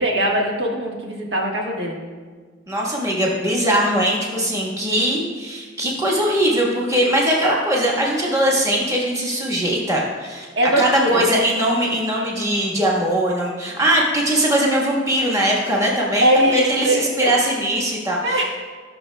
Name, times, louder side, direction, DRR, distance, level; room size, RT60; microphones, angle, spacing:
voice 1, 0.0-2.0 10.6-11.3 16.2-17.3 18.2-18.5, right 1 dB, 70° right, -1 dB, 1.4 m, -20 dB
voice 2, 2.7-10.5 10.8-18.5, right 1 dB, 15° right, -3 dB, 1.3 m, -20 dB
18.0 x 6.0 x 2.2 m, 1.5 s
head